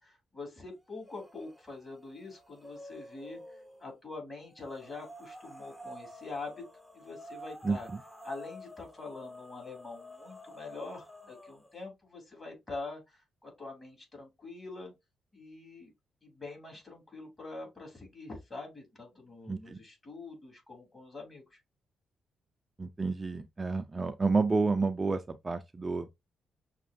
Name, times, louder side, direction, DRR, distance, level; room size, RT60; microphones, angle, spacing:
voice 1, 0.0-6.6 6.9-7.9 8.2-14.9 15.3-15.9 16.2-21.6, left 3 dB, 30° left, 2.9 m, -45 dB
sound 1, 1.0-1.6 2.0-3.8 4.6-11.7, equal, 5° left, 0.8 m, -50 dB
voice 2, 19.5-19.8 22.8-26.1, right 3 dB, 30° right, 0.4 m, -30 dB
6.0 x 2.4 x 2.6 m
cardioid pair, 70°, 0 cm